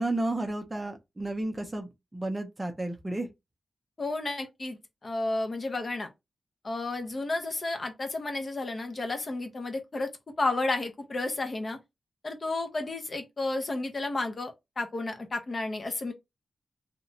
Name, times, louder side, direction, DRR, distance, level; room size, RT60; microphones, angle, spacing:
voice 1, 0.0-3.3, right 2 dB, 15° right, 0.5 m, -32 dB
voice 2, 4.0-6.1 6.6-10.1 10.4-11.8 12.2-16.1, left 2 dB, 35° left, 0.5 m, -32 dB
2.8 x 2.1 x 2.6 m
wide cardioid pair, 150°, 0 cm